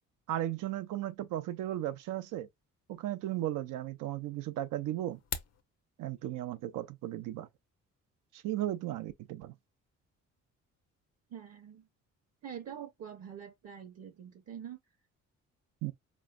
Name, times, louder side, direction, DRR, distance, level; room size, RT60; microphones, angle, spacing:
voice 1, 0.3-2.5 2.9-5.2 6.0-7.5 8.3-9.5 15.8-15.9, right 13 dB, 90° right, 0.6 m, -35 dB
sound 1, 5.1-5.6, left 7 dB, 60° left, 0.8 m, -39 dB
voice 2, 11.3-11.9 12.4-14.8, right 8 dB, 55° right, 0.8 m, -45 dB
4.2 x 3.1 x 2.2 m
cardioid pair, 90°, 30 cm